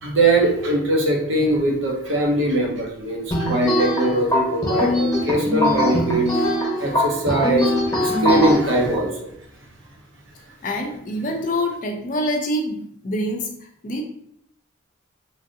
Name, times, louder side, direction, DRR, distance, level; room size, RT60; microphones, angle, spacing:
voice 1, 0.0-9.3, right 2 dB, 70° right, 0 dB, 0.7 m, -21 dB
sound 1, 3.3-8.6, left 1 dB, 15° left, 1.0 m, -21 dB
voice 2, 10.6-14.0, left 1 dB, 40° left, 2 dB, 0.5 m, -26 dB
3.1 x 2.6 x 2.6 m, 0.69 s
head